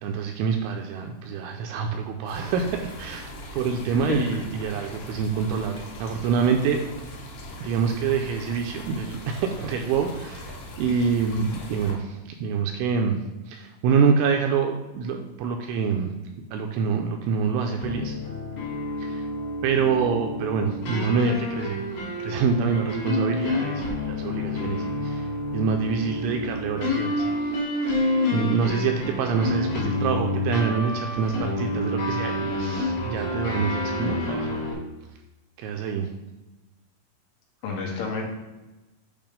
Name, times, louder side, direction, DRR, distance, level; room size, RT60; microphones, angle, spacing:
voice 1, 0.0-6.8 7.6-10.5 10.8-13.2 13.5-16.1 16.5-18.1 19.0-19.2 19.6-21.8 22.2-25.3 25.5-27.2 27.9-28.0 28.3-34.5 35.6-36.1, right 6 dB, 85° right, 3 dB, 2.8 m, -26 dB
sound 1, 2.3-11.9, left 1 dB, 90° left, 1.8 m, -40 dB
sound 2, 17.8-34.7, left 2 dB, 55° left, 3.0 m, -28 dB
voice 2, 37.6-38.2, left 4 dB, 75° left, -1 dB, 3.3 m, -30 dB
8.7 x 2.9 x 5.1 m, 1.1 s
omnidirectional pair, 5.7 m